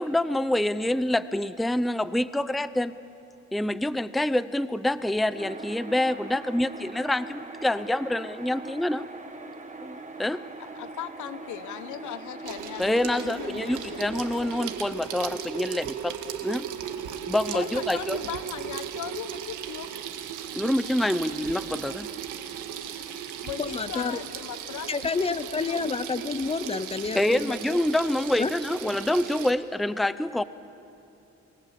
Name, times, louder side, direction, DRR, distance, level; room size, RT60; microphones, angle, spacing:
voice 1, 0.0-2.9 3.5-9.1 9.8-10.4 12.8-16.2 16.4-16.7 17.3-18.2 20.6-22.1 27.1-30.4, left 1 dB, ahead, 14 dB, 0.6 m, -26 dB
sound 1, 5.4-14.7, right 3 dB, 25° right, 2.0 m, -41 dB
voice 2, 10.7-14.0 17.5-19.9 23.4-26.0, left 11 dB, 75° left, 13 dB, 1.2 m, -38 dB
Water tap faucet / Sink (filling or washing), 12.5-29.5, right 9 dB, 85° right, 1.8 m, -37 dB
voice 3, 23.6-24.2 24.9-27.6 28.4-28.5, left 4 dB, 20° left, 15 dB, 0.8 m, -29 dB
29.0 x 19.5 x 7.6 m, 2.8 s
cardioid pair, 90°, 30 cm